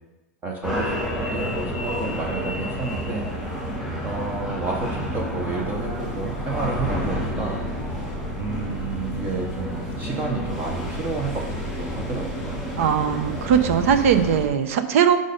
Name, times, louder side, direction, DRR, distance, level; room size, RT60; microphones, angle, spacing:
voice 1, 0.4-0.9 1.3-3.3 4.0-7.6 8.4-12.6, right 4 dB, 20° right, 1 dB, 0.8 m, -30 dB
sound 1, 0.6-14.5, equal, 5° right, 2.3 m, -29 dB
voice 2, 12.8-15.2, right 8 dB, 60° right, 9 dB, 0.7 m, -19 dB
6.4 x 5.1 x 5.2 m, 1.0 s
supercardioid pair, 150°, 8 cm